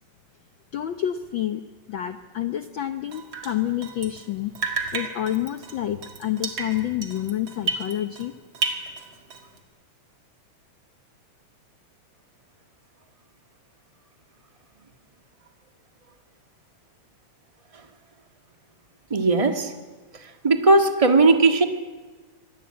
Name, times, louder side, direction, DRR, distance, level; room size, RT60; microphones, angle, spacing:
voice 1, 0.7-1.6 1.9-4.5 4.9-8.3, left 12 dB, 85° left, 9 dB, 1.0 m, -28 dB
Drip, 3.1-4.3 4.5-8.3 8.5-9.6, right 4 dB, 45° right, 2.8 m, -32 dB
voice 2, 19.1-19.7 20.4-21.6, right 3 dB, 20° right, 6 dB, 0.9 m, -17 dB
25.5 x 20.0 x 8.8 m, 1.4 s
omnidirectional pair, 3.3 m